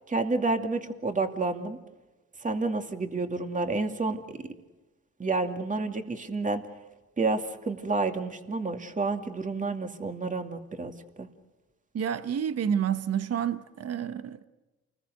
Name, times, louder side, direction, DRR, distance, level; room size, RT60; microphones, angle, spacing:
voice 1, 0.1-1.8 2.4-4.2 5.2-6.6 7.2-11.3, right 3 dB, 25° right, 2.5 m, -29 dB
voice 2, 11.9-14.5, right 8 dB, 55° right, 1.1 m, -29 dB
29.0 x 20.5 x 6.6 m
cardioid pair, 90°, 30 cm